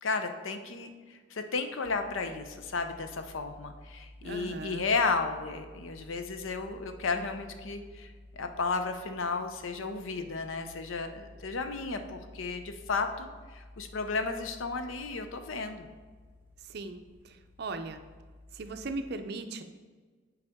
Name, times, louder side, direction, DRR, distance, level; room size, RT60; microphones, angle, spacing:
voice 1, 0.0-15.9, left 4 dB, 75° left, 7 dB, 0.6 m, -33 dB
sound 1, 1.8-19.0, left 1 dB, 10° right, 0.7 m, -53 dB
voice 2, 4.2-4.8 16.7-18.0 18.5-19.6, right 3 dB, 50° right, 8 dB, 0.5 m, -38 dB
8.0 x 4.8 x 3.5 m, 1.4 s
head